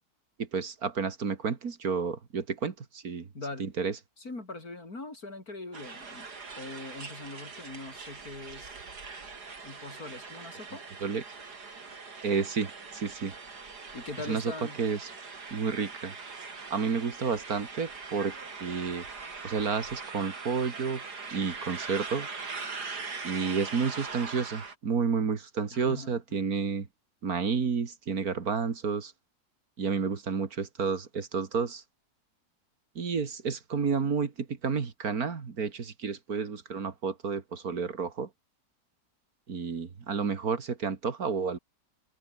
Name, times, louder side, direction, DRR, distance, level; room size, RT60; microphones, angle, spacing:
voice 1, 0.4-3.3 3.6-3.9 11.0-11.2 12.2-13.3 14.3-14.5 14.8-15.1 15.5-16.1 16.7-18.4 18.6-19.1 19.4-21.0 21.3-22.3 23.2-26.9 27.2-29.1 29.8-31.8 33.0-38.3 39.5-41.6, right 5 dB, 65° right, 2.4 m, -30 dB
voice 2, 3.3-3.7 4.2-6.3 6.6-8.8 9.6-10.8 13.9-14.8 25.7-26.1, left 2 dB, 65° left, 5.9 m, -41 dB
sound 1, 5.7-24.7, right 4 dB, 85° right, 3.5 m, -42 dB
omnidirectional pair, 1.7 m